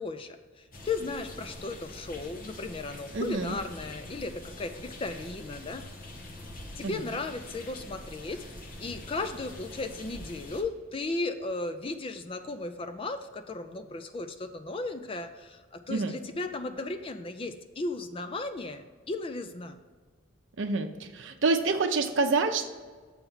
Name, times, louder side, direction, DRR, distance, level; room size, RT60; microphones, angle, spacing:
voice 1, 0.0-5.8 6.8-8.5 8.8-19.8, left 3 dB, 25° left, 9 dB, 0.3 m, -35 dB
sound 1, 0.7-10.6, left 1 dB, 45° left, 1.0 m, -45 dB
voice 2, 3.1-3.6 6.8-7.0 15.9-16.1 20.6-22.7, right 3 dB, 70° right, 5 dB, 0.6 m, -27 dB
7.0 x 4.5 x 5.5 m, 1.5 s
head